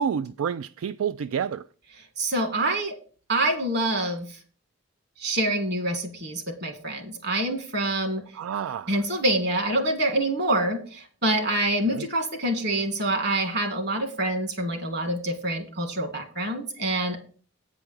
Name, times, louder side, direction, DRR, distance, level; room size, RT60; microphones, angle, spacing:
voice 1, 0.0-1.6 8.4-8.9 11.9-12.1, right 7 dB, 80° right, 0.3 m, -29 dB
voice 2, 2.2-3.0 3.3-4.3 5.2-8.2 8.9-17.2, right 1 dB, 55° right, 1.9 m, -26 dB
8.9 x 4.9 x 7.1 m
head